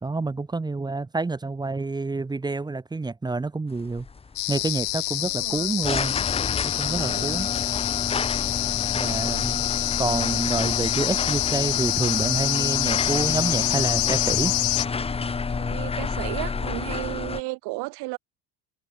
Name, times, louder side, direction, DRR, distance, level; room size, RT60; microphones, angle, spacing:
voice 1, 0.0-4.1 4.5-6.2 6.6-7.5 8.9-9.6 10.0-14.5, right 3 dB, 10° right, 2.0 m, -28 dB
sound 1, 3.7-17.4, left 5 dB, 10° left, 2.3 m, -30 dB
sound 2, 4.4-14.9, left 40 dB or more, 65° left, 2.4 m, -26 dB
voice 2, 5.2-5.8 6.8-7.4 15.6-18.2, right 25 dB, 55° right, 2.5 m, -34 dB
cardioid pair, 170°, 47 cm